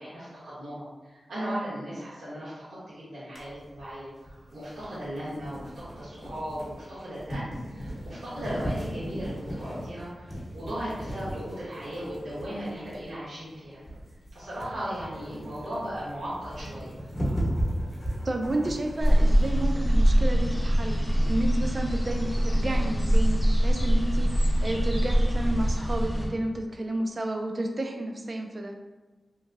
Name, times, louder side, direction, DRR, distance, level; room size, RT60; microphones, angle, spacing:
voice 1, 0.0-13.8 14.3-16.9, equal, 85° right, -11 dB, 1.1 m, -37 dB
sound 1, 3.4-19.7, equal, 35° left, 0.9 m, -36 dB
voice 2, 18.2-28.7, right 1 dB, 40° right, 3 dB, 0.3 m, -31 dB
sound 2, 19.0-26.3, equal, 10° left, 0.6 m, -23 dB
2.9 x 2.7 x 2.5 m, 1.2 s
wide cardioid pair, 95°, 0 cm